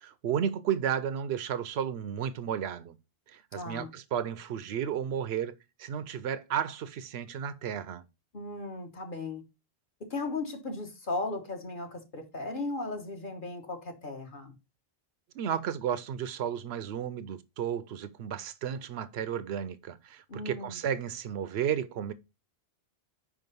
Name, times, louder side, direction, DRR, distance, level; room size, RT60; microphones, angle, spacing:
voice 1, 0.0-3.0 3.3-8.1 15.3-22.1, right 9 dB, 85° right, 0.9 m, -33 dB
voice 2, 3.5-3.9 8.3-9.4 10.0-14.5 20.3-20.8, left 2 dB, 55° left, 1.4 m, -36 dB
5.0 x 4.8 x 5.3 m
omnidirectional pair, 1.1 m